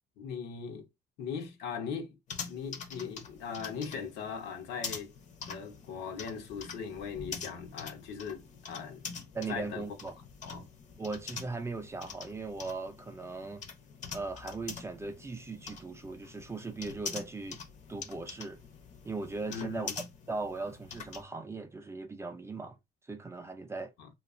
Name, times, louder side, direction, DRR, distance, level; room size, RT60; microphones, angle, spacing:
voice 1, 0.2-0.9 1.2-2.2 2.5-5.1 5.5-9.0 9.5-9.9 10.4-10.7 19.5-19.9 24.0-24.1, left 6 dB, 80° left, 0.8 m, -39 dB
sound 1, 2.3-21.2, left 5 dB, 45° left, 0.6 m, -45 dB
voice 2, 9.3-10.2 11.0-13.6 14.1-17.6 17.9-18.6 19.0-22.8 23.0-23.9, right 3 dB, 15° right, 0.4 m, -39 dB
2.7 x 2.3 x 2.4 m
cardioid pair, 110°, 17 cm